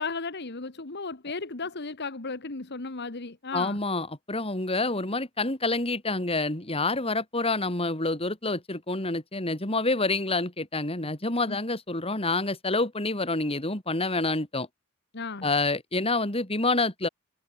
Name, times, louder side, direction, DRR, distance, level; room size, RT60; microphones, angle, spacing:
voice 1, 0.0-3.8 11.4-11.6 15.1-15.5, left 4 dB, 50° left, 1.5 m, -35 dB
voice 2, 3.5-14.7 15.4-17.1, left 2 dB, 25° left, 4.4 m, -27 dB
head